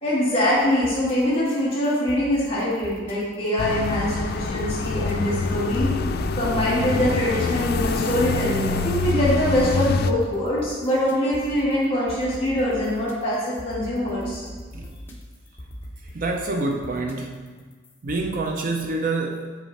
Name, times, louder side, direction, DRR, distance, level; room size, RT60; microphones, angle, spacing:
voice 1, 0.0-5.9 6.3-14.5, equal, 30° left, -7 dB, 2.0 m, -23 dB
sound 1, 0.5-18.9, equal, 10° left, 0.9 m, -42 dB
sound 2, 3.6-10.1, left 4 dB, 55° left, 0.4 m, -26 dB
voice 2, 16.1-17.5 18.0-19.6, right 3 dB, 45° right, 3 dB, 0.5 m, -27 dB
9.0 x 4.4 x 4.1 m, 1.4 s
head